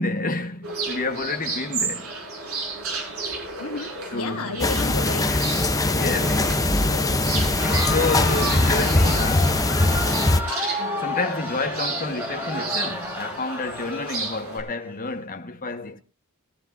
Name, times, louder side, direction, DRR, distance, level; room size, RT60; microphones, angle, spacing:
voice 1, 0.0-2.2 4.1-4.5 5.1-5.4 5.9-6.6 7.9-10.0 10.7-16.0, left 3 dB, 40° left, 1.5 m, -29 dB
sound 1, 0.6-14.6, right 3 dB, 70° right, 5.5 m, -32 dB
voice 2, 3.6-5.3 6.8-7.4, left 4 dB, 85° left, 1.4 m, -33 dB
sound 2, 4.6-10.4, left 2 dB, 15° left, 0.9 m, -21 dB
Crowd, 7.4-14.9, left 1 dB, 10° right, 4.0 m, -32 dB
22.0 x 13.5 x 2.7 m
head